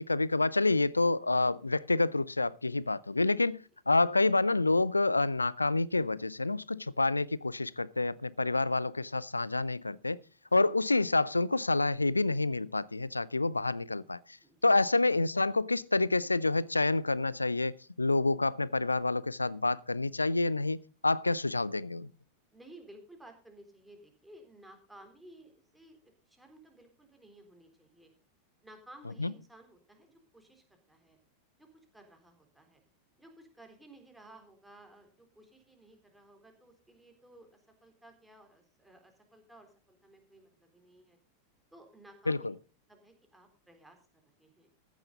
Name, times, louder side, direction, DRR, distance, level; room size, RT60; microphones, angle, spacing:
voice 1, 0.0-10.2 10.5-14.2 14.6-22.1 29.2-29.3 42.3-42.5, left 2 dB, 80° left, 0.5 m, -28 dB
voice 2, 14.4-14.8 22.5-28.1 28.6-31.2 31.6-32.8 33.2-41.2 41.7-42.5 42.9-44.0 44.4-44.7, right 1 dB, 5° right, 3.8 m, -56 dB
14.5 x 10.5 x 3.9 m
figure-of-eight pair, 90°, 0 cm